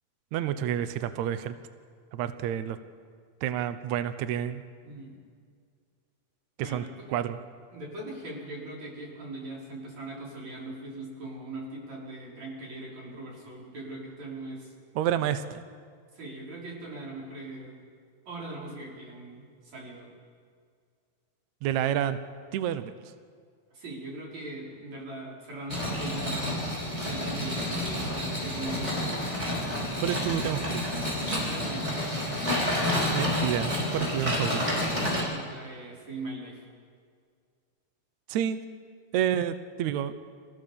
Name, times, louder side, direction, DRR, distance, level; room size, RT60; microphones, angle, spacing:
voice 1, 0.3-1.5 2.1-2.8 3.4-4.6 6.6-7.4 14.9-15.6 21.6-22.2 22.5-22.9 30.0-30.8 33.1-34.7 38.3-38.6 39.1-40.1, right 10 dB, 85° right, 11 dB, 1.6 m, -29 dB
voice 2, 4.8-5.1 6.6-7.2 7.7-14.7 16.1-17.8 18.3-20.1 23.7-26.5 27.0-29.3 31.4-32.0 35.1-36.6, right 2 dB, 45° right, -3 dB, 5.7 m, -40 dB
sound 1, 25.7-35.2, left 1 dB, 10° right, 6.1 m, -29 dB
26.5 x 15.5 x 6.9 m, 2.1 s
omnidirectional pair, 4.3 m